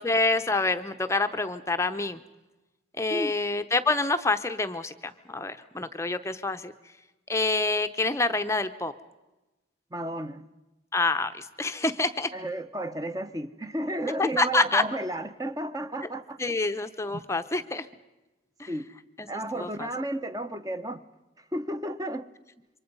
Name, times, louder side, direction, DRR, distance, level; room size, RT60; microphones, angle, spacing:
voice 1, 0.0-2.2 3.0-6.7 7.3-8.9 10.9-12.3 14.2-14.8 16.0-16.1 16.4-17.9 18.6-18.7 19.2-19.9, left 3 dB, 15° left, 0.7 m, -27 dB
voice 2, 9.9-10.4 12.3-16.4 17.1-17.2 18.7-18.9 19.3-21.0 21.5-22.2, right 1 dB, 20° right, 0.8 m, -32 dB
28.0 x 24.5 x 5.4 m
head